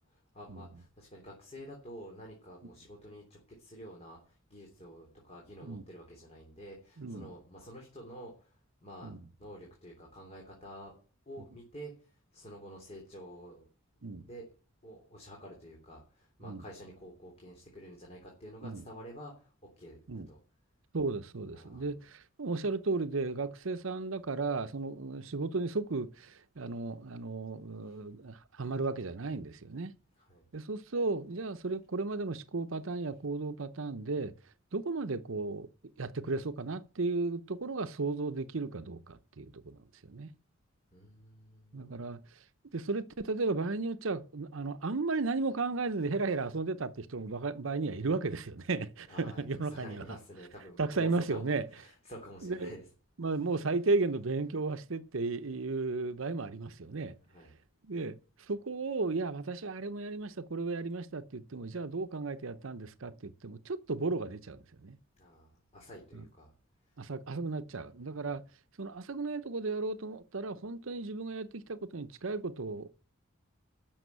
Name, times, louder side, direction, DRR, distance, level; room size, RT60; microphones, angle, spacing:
voice 1, 0.1-10.9 11.2-13.7 14.2-14.4 14.8-20.4 21.5-21.9 27.8-28.0 30.2-30.4 40.9-41.9 49.1-52.9 53.3-53.4 57.2-57.5 65.2-66.5 66.8-67.0 67.7-68.2, equal, 30° left, 3.3 m, -50 dB
voice 2, 7.0-7.3 9.0-9.2 14.0-14.3 16.5-16.6 18.6-18.8 20.1-20.3 20.9-29.9 30.5-34.3 34.7-35.7 36.0-39.8 40.1-40.3 41.7-42.2 42.7-50.0 50.8-51.7 52.4-52.7 53.2-57.1 57.8-58.2 58.5-65.0 66.1-66.2 67.0-68.4 68.8-72.9, right 3 dB, 75° right, 0.8 m, -34 dB
12.5 x 6.4 x 8.0 m
head